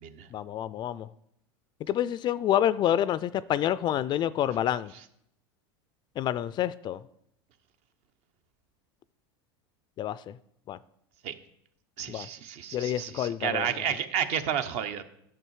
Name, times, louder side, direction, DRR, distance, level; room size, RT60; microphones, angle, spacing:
voice 1, 0.3-1.1 1.9-4.9 6.2-7.0 10.0-10.2 10.7-10.8 12.1-12.3 12.7-13.8, left 11 dB, 35° left, 0.3 m, -28 dB
voice 2, 12.0-15.0, right 9 dB, 55° right, 0.9 m, -31 dB
10.0 x 6.6 x 4.7 m
hypercardioid pair, 105°, 13 cm